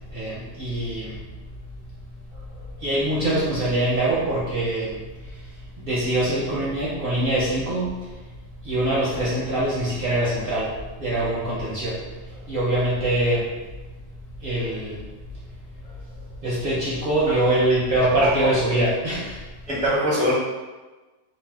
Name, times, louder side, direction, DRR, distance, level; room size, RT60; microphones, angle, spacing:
voice 1, 0.1-1.2 2.8-5.0 5.8-7.9 8.6-10.7 11.0-12.0 12.3-13.5 14.4-15.0 16.4-19.4, right 1 dB, 55° right, -7 dB, 0.6 m, -23 dB
voice 2, 19.7-20.3, equal, 10° left, -8 dB, 0.4 m, -23 dB
2.6 x 2.1 x 3.3 m, 1.2 s
omnidirectional pair, 1.4 m